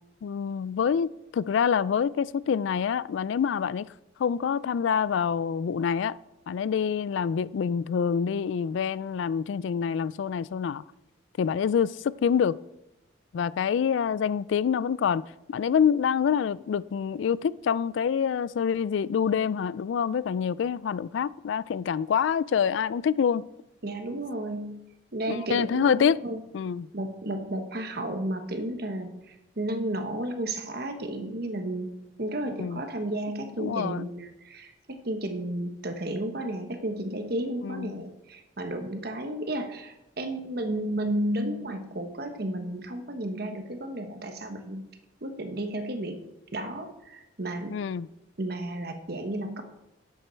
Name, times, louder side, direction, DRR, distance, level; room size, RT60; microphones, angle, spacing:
voice 1, 0.2-3.9 4.2-6.2 6.5-10.8 11.4-12.6 13.3-15.2 15.5-23.5 25.3-26.2 26.5-26.9 32.6-32.8 33.6-34.1 37.6-38.0 47.7-48.1, left 7 dB, 70° left, 0.3 m, -26 dB
voice 2, 23.8-24.8 25.1-26.4 26.9-31.9 32.2-44.8 45.2-46.2 46.5-47.8 48.4-49.6, right 1 dB, 50° right, 1.2 m, -33 dB
10.5 x 8.0 x 4.5 m
head